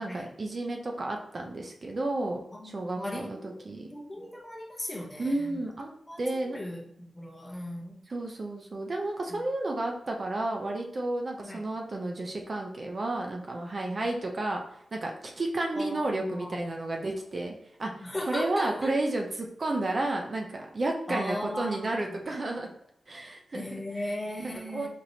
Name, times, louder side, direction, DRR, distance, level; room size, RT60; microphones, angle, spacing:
voice 1, 0.0-3.9 5.2-5.9 6.2-6.6 8.1-14.6 14.9-22.7 23.1-24.1 24.4-24.9, right 2 dB, 40° right, 1 dB, 0.5 m, -32 dB
voice 2, 2.5-3.5 3.9-5.6 6.1-6.2 6.5-8.0 9.3-9.4 11.4-11.6 15.8-16.7 18.0-18.9 21.1-22.2 23.5-24.9, left 1 dB, 15° left, -1 dB, 0.8 m, -37 dB
4.2 x 3.0 x 2.7 m, 0.72 s
wide cardioid pair, 105°, 0 cm